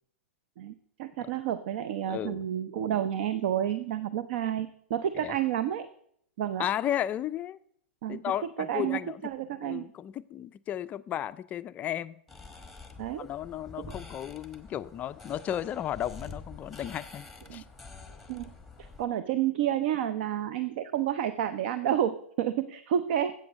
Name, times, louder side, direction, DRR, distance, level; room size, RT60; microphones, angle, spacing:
voice 1, 1.0-5.9 6.4-6.7 8.0-8.3 8.6-9.8 13.0-13.3 13.9-14.0 17.5-17.6 18.3-18.5 18.8-23.3, right 10 dB, 55° right, 0.6 m, -30 dB
voice 2, 2.1-2.4 5.2-5.3 6.6-7.6 8.1-9.2 9.6-12.1 13.2-17.3 17.5-17.6, left 11 dB, 20° left, 0.3 m, -34 dB
sound 1, 12.3-19.1, left 3 dB, ahead, 1.1 m, -47 dB
8.4 x 8.1 x 6.3 m
hypercardioid pair, 140°, 7 cm